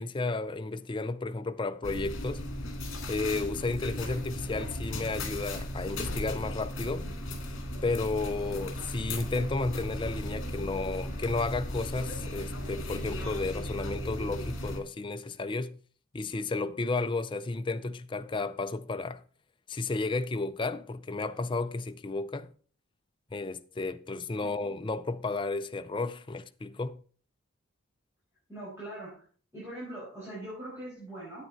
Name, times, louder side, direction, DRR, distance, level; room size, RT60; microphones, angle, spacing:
voice 1, 0.0-2.4 3.1-7.1 7.8-15.8 16.1-19.2 19.7-22.5 23.3-27.0, left 3 dB, 25° left, 0.4 m, -33 dB
sound 1, 1.8-14.8, left 1 dB, 60° left, 2.3 m, -36 dB
voice 2, 28.5-29.3 29.5-31.5, right 1 dB, 10° right, 5.1 m, -42 dB
9.1 x 8.9 x 4.0 m
head